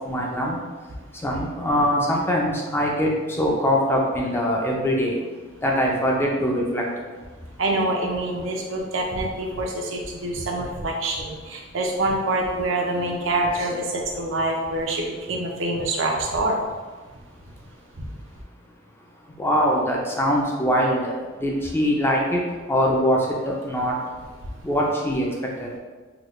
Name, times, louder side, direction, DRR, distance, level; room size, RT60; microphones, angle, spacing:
voice 1, 0.1-0.6 1.2-5.1 5.6-6.8 19.4-21.1 21.4-22.4 22.7-23.2 23.5-23.9 24.6-25.3 25.6-25.7, equal, 10° left, -2 dB, 0.4 m, -22 dB
voice 2, 7.6-16.6 18.0-18.1, right 2 dB, 80° right, 0 dB, 0.6 m, -26 dB
3.9 x 2.2 x 3.1 m, 1.4 s
head